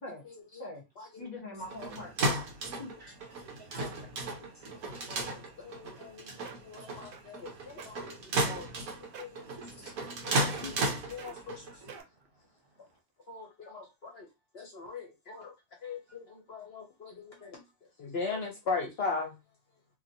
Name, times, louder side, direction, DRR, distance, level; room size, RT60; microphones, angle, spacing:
voice 1, 0.3-0.7 1.0-1.3 2.9-3.0 4.4-4.5 4.9-8.7 9.0-9.9 10.2-11.6 13.3-14.3 14.5-15.5 15.8-17.6 18.0-19.3, left 4 dB, 55° left, 0.8 m, -40 dB
voice 2, 1.2-2.4 2.8-2.9 10.6-10.7, left 2 dB, 35° left, 0.9 m, -42 dB
sound 1, 1.6-12.0, right 2 dB, 85° right, 1.3 m, -35 dB
voice 3, 3.6-4.1 4.4-4.8 9.7-9.8 11.3-11.4 11.7-12.8, right 2 dB, 45° right, 0.9 m, -55 dB
sound 2, 6.1-6.2 6.4-6.7 7.1-7.4 7.7-7.9 8.5-8.8 9.1-9.4 9.9-10.2 10.5-10.8 11.2-11.4 11.9-12.3 12.9-13.0, right 6 dB, 65° right, 0.5 m, -47 dB
2.8 x 2.8 x 2.6 m
omnidirectional pair, 1.5 m